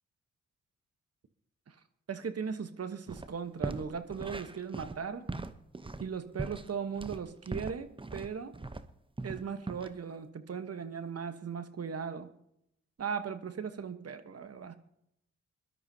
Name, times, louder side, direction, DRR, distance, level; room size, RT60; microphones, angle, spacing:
voice 1, 2.1-5.2 6.0-8.5 9.2-12.3 13.0-14.8, right 6 dB, 50° right, 10 dB, 1.2 m, -38 dB
sound 1, 3.1-3.3 3.6-8.9 9.2-9.9, right 2 dB, 15° right, 0.8 m, -40 dB
22.0 x 12.0 x 2.8 m, 0.78 s
supercardioid pair, 45°, 32 cm